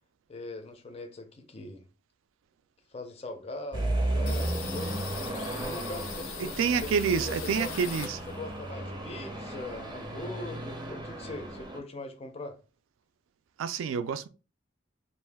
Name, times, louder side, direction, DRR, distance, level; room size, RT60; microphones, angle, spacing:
voice 1, 0.3-1.8 2.9-4.9 5.6-7.7 8.0-8.1 8.4-12.6, left 2 dB, 30° left, 0.4 m, -41 dB
sound 1, 3.7-11.8, right 1 dB, 25° right, 0.6 m, -34 dB
sound 2, 4.3-8.6 8.9-10.3 10.6-10.7 11.0-11.7, left 6 dB, 90° left, 0.5 m, -42 dB
voice 2, 6.4-8.2 13.6-14.3, right 6 dB, 75° right, 0.3 m, -28 dB
2.5 x 2.2 x 3.3 m
head